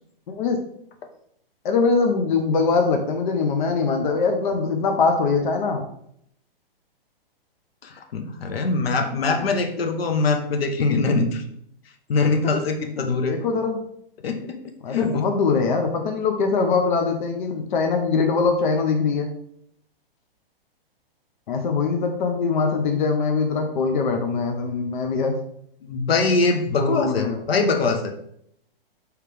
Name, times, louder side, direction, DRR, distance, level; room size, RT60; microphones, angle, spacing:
voice 1, 0.3-0.6 1.6-5.8 9.1-9.5 13.1-13.8 14.8-19.3 21.5-25.4 26.8-27.4, left 4 dB, 55° left, 4 dB, 0.7 m, -22 dB
voice 2, 7.8-11.4 12.1-13.4 14.2-14.6 14.9-15.2 25.8-28.1, left 3 dB, 80° left, 5 dB, 0.9 m, -23 dB
4.8 x 3.2 x 3.3 m, 0.71 s
hypercardioid pair, 150°, 29 cm